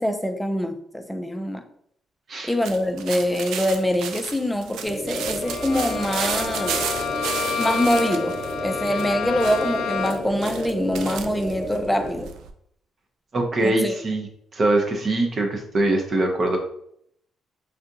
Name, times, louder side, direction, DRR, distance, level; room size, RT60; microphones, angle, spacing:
voice 1, 0.0-1.6 2.4-6.8 7.6-8.4 8.6-12.3 13.6-13.9, equal, 5° left, 0.4 m, -24 dB
sound 1, 2.6-12.5, right 7 dB, 85° right, 0.3 m, -34 dB
sound 2, 4.8-12.1, equal, 25° left, 0.8 m, -31 dB
Bowed string instrument, 5.4-10.4, left 6 dB, 85° left, 0.3 m, -29 dB
voice 2, 13.3-14.3 14.5-16.6, right 2 dB, 45° right, 0.6 m, -22 dB
3.4 x 2.5 x 2.7 m
cardioid pair, 90°, 0 cm